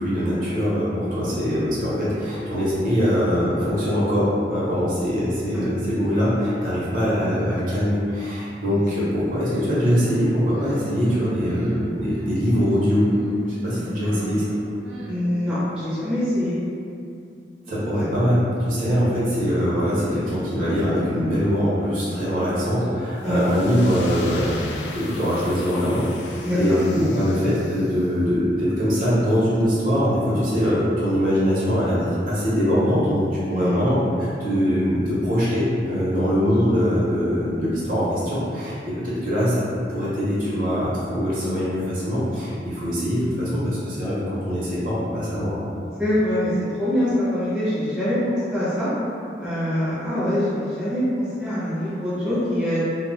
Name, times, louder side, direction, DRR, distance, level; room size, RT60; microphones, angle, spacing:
voice 1, 0.0-13.1 13.5-14.4 17.7-24.6 24.9-39.6 39.9-45.7, equal, 50° right, -9 dB, 0.7 m, -22 dB
sound 1, 9.4-15.8, right 1 dB, 85° right, 0.5 m, -35 dB
voice 2, 13.7-14.4 15.1-16.6 23.2-23.5 26.4-26.8 33.5-33.9 46.0-46.5 46.8-48.9 49.4-52.8, left 1 dB, 5° right, -12 dB, 0.6 m, -24 dB
sound 2, 23.2-28.1, left 3 dB, 80° left, 0.3 m, -38 dB
2.1 x 2.0 x 3.7 m, 2.5 s
head